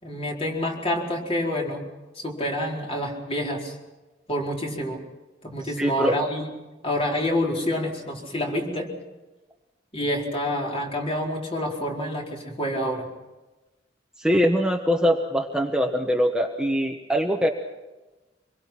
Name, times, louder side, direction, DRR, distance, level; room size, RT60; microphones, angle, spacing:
voice 1, 0.0-1.8 2.1-3.8 4.3-5.0 5.4-6.5 6.8-8.9 9.9-13.1, left 1 dB, 30° left, -1 dB, 4.7 m, -27 dB
voice 2, 5.8-6.2 14.2-17.5, equal, 5° right, 2 dB, 1.2 m, -22 dB
26.0 x 22.0 x 6.0 m, 1.1 s
head